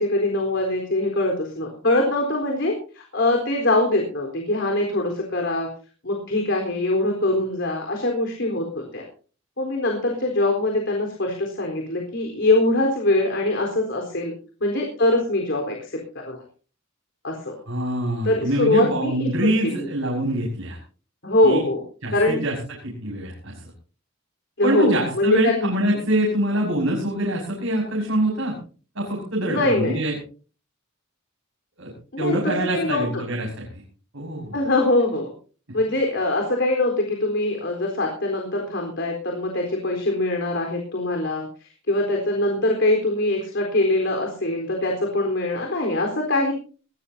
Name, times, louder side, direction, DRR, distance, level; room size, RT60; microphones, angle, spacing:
voice 1, 0.0-5.7 6.0-9.0 9.6-14.3 14.6-16.4 17.2-17.5 18.2-19.9 21.2-21.8 22.1-22.4 24.6-25.7 29.4-30.0 32.1-33.1 34.5-35.3 35.7-46.5, left 2 dB, 60° left, 1 dB, 4.0 m, -23 dB
voice 2, 17.7-20.8 21.4-21.6 22.0-22.6 22.8-23.6 24.6-28.6 28.9-30.2 31.8-31.9 32.2-33.6 34.1-34.6, right 1 dB, 80° right, -2 dB, 5.9 m, -24 dB
21.5 x 17.5 x 2.8 m, 0.38 s
head